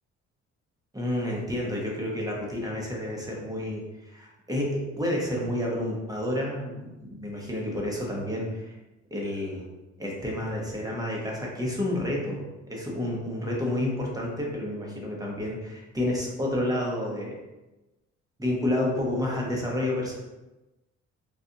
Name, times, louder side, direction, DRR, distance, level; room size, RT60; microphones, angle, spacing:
voice 1, 0.9-8.7 9.1-9.6 10.0-17.3 18.4-20.2, left 1 dB, 10° right, -3 dB, 0.9 m, -30 dB
3.9 x 2.4 x 2.8 m, 1.1 s
cardioid pair, 90°, 30 cm